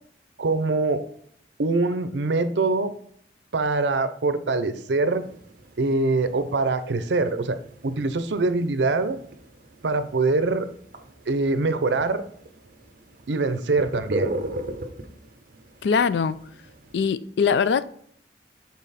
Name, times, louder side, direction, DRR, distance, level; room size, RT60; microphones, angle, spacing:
voice 1, 0.4-1.0 1.6-2.9 3.5-5.2 5.8-9.2 9.8-10.7 11.3-12.2 13.3-14.3, right 3 dB, 85° right, 0.6 m, -24 dB
sound 1, 5.0-17.0, right 2 dB, 50° right, 0.9 m, -37 dB
voice 2, 15.8-16.4 16.9-17.9, left 6 dB, 75° left, 0.4 m, -22 dB
7.5 x 4.0 x 4.1 m
head